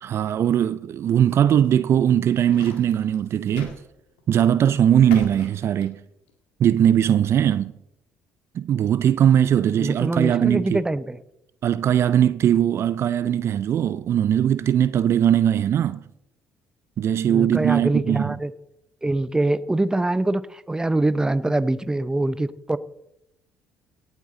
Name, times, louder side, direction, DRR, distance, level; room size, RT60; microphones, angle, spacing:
voice 1, 0.0-3.8 4.3-6.0 6.6-7.7 8.5-10.8 11.6-16.0 17.0-18.3, right 10 dB, 55° right, 0.4 m, -20 dB
sound 1, 2.0-3.8 4.2-4.4 5.1-6.3, left 5 dB, 90° left, 1.9 m, -39 dB
voice 2, 9.8-11.2 17.3-18.5 19.0-22.8, right 2 dB, 15° right, 0.7 m, -24 dB
17.5 x 8.2 x 3.8 m
hypercardioid pair, 65°, 5 cm